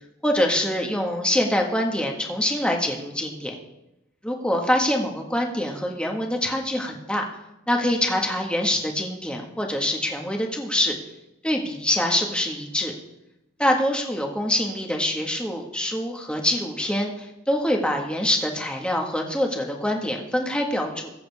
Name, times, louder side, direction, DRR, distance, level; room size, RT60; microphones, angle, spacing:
voice 1, 0.2-3.5 4.2-7.2 7.7-11.0 11.4-12.9 13.6-21.1, left 1 dB, 5° left, 1 dB, 1.7 m, -25 dB
22.0 x 7.8 x 3.6 m, 0.91 s
head